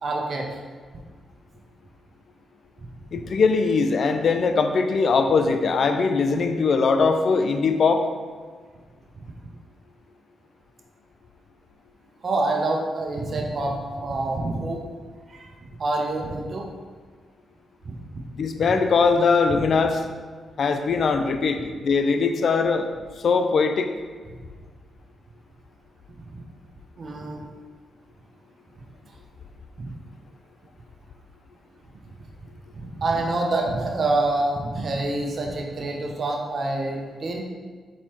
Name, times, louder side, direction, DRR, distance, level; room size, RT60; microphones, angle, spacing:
voice 1, 0.0-0.5 12.2-14.8 15.3-15.5 15.8-16.7 17.9-18.0 27.0-27.4 29.8-29.9 32.7-37.4, right 2 dB, 55° right, 1 dB, 0.7 m, -26 dB
voice 2, 3.1-8.0 18.3-20.0 20.6-22.9 23.2-23.9, left 4 dB, 60° left, 7 dB, 0.4 m, -21 dB
4.3 x 4.2 x 2.9 m, 1.5 s
hypercardioid pair, 40°, 0 cm